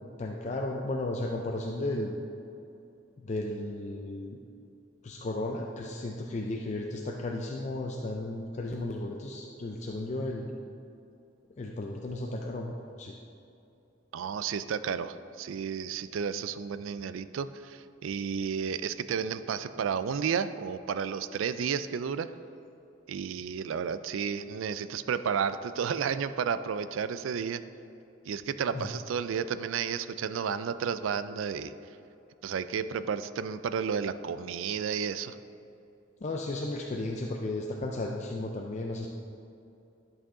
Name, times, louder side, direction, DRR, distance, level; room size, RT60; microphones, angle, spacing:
voice 1, 0.2-2.2 3.2-4.4 5.0-10.5 11.6-13.1 28.7-28.9 36.2-39.1, left 2 dB, 35° left, 0 dB, 0.5 m, -34 dB
voice 2, 14.1-22.3 23.1-27.6 28.3-31.7 32.4-35.4, right 7 dB, 85° right, 13 dB, 0.4 m, -32 dB
11.0 x 6.1 x 3.7 m, 2.7 s
head